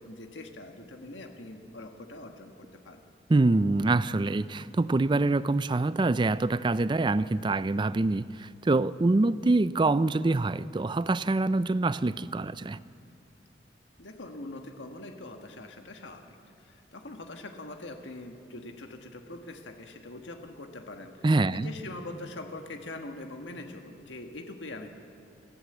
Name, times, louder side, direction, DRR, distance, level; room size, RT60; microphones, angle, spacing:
voice 1, 0.0-3.0 14.0-24.9, left 2 dB, 85° left, 1.5 m, -43 dB
voice 2, 3.3-12.8 21.2-21.7, right 2 dB, 25° right, 0.4 m, -25 dB
23.5 x 14.5 x 8.0 m
head